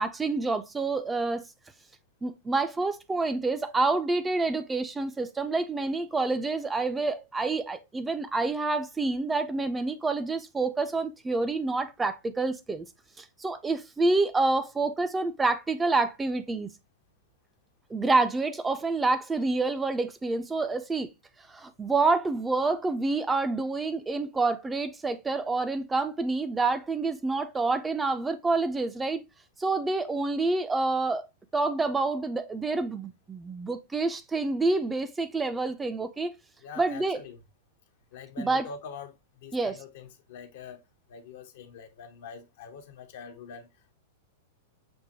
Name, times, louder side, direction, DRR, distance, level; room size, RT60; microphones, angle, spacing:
voice 1, 0.0-1.4 2.2-12.9 13.2-16.7 17.9-21.1 21.5-29.2 29.6-31.2 31.5-36.3 36.8-37.2 38.4-38.7 39.5-39.8, right 3 dB, 15° right, 0.4 m, -28 dB
voice 2, 36.6-37.4 38.1-40.8 41.1-43.7, left 6 dB, 65° left, 0.7 m, -44 dB
6.2 x 2.1 x 2.7 m
hypercardioid pair, 100°, 0 cm